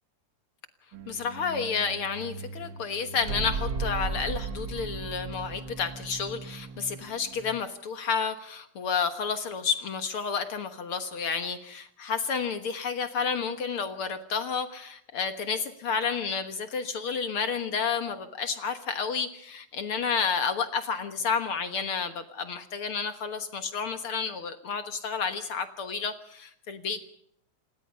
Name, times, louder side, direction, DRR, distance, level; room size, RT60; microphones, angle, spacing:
sound 1, 0.9-7.6, right 4 dB, 50° right, 1.6 m, -37 dB
voice 1, 1.1-27.0, left 5 dB, 55° left, 9 dB, 1.6 m, -31 dB
27.5 x 20.0 x 5.5 m, 0.69 s
omnidirectional pair, 4.0 m